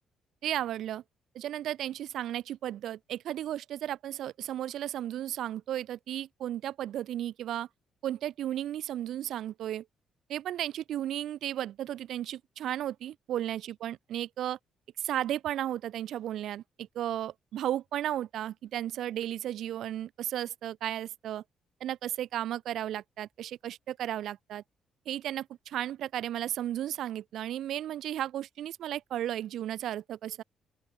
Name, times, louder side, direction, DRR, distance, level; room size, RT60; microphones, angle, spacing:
voice 1, 0.4-1.0 1.3-7.7 8.0-9.8 10.3-14.6 15.0-21.4 21.8-24.6 25.1-30.4, right 12 dB, 75° right, 0.4 m, -34 dB
open air
cardioid pair, 90°, 0 cm